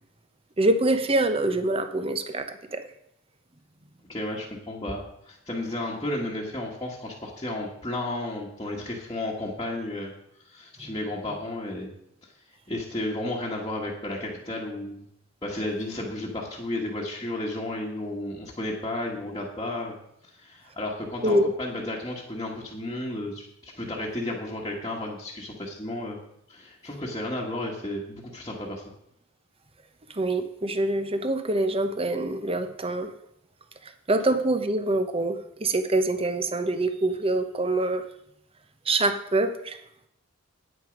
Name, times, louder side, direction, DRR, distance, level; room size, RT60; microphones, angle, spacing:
voice 1, 0.6-2.8 21.2-21.5 30.1-33.1 34.1-38.0 38.9-39.8, right 2 dB, 30° right, 8 dB, 0.9 m, -25 dB
voice 2, 4.1-10.1 10.5-11.9 12.7-15.0 15.4-20.0 20.2-26.2 26.5-28.8, left 1 dB, 20° left, -5 dB, 1.5 m, -33 dB
9.2 x 9.1 x 5.2 m, 0.74 s
head